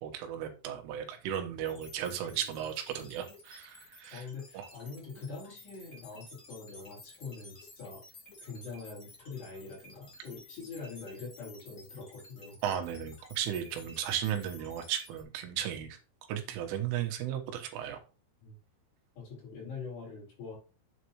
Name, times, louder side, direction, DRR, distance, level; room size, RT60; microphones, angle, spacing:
voice 1, 0.0-4.3 4.5-4.7 12.6-16.0 16.3-18.0, right 10 dB, 90° right, 6 dB, 3.8 m, -35 dB
sound 1, 1.6-15.2, left 2 dB, 20° left, 3.2 m, -54 dB
voice 2, 4.1-8.0 8.4-12.6 18.4-18.6 19.2-20.6, left 4 dB, 60° left, -3 dB, 6.2 m, -44 dB
9.4 x 7.5 x 3.1 m, 0.34 s
omnidirectional pair, 5.6 m